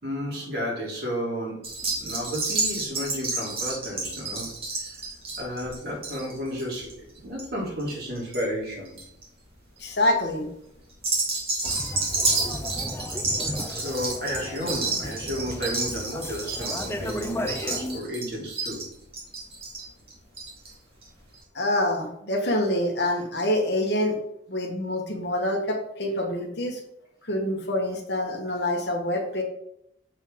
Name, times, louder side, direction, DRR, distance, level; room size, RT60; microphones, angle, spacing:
voice 1, 0.0-5.0 5.4-6.9 7.2-9.0 13.6-18.8, equal, 50° right, -4 dB, 3.0 m, -32 dB
sound 1, 1.6-8.4 8.7-9.2 9.8-10.1 10.9-20.7 21.0-21.1 21.3-21.4, right 3 dB, 30° right, 2.3 m, -30 dB
voice 2, 9.8-10.5 21.5-24.2 24.5-26.8 27.2-29.4, left 1 dB, 55° left, 3 dB, 1.3 m, -26 dB
sound 2, 11.6-18.0, left 1 dB, 10° left, 0.4 m, -34 dB
7.2 x 5.5 x 3.6 m, 0.77 s
head